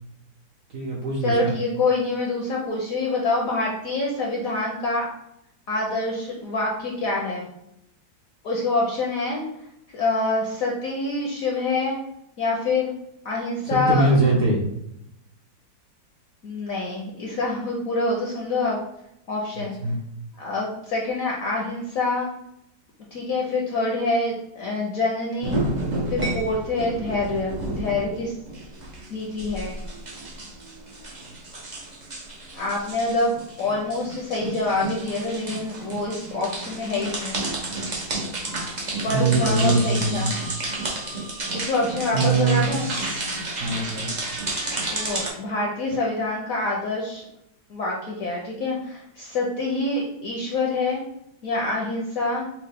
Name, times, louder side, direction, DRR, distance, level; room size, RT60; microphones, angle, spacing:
voice 1, 0.7-1.5 13.6-14.6 19.8-20.0 39.1-40.3 42.1-42.8 43.6-44.1, right 3 dB, 65° right, -3 dB, 0.8 m, -22 dB
voice 2, 1.2-5.1 5.7-7.5 8.4-9.4 9.9-12.0 12.4-12.9 13.2-14.1 16.4-18.8 19.3-19.8 20.4-22.3 23.1-25.6 26.1-28.3 29.1-29.8 32.5-37.4 39.0-40.3 41.5-42.9 44.9-47.2 47.7-51.0 51.4-52.5, left 2 dB, 65° left, -2 dB, 0.8 m, -26 dB
sound 1, 25.4-45.3, right 2 dB, 90° right, 0.4 m, -31 dB
5.4 x 2.1 x 3.4 m, 0.81 s
omnidirectional pair, 2.1 m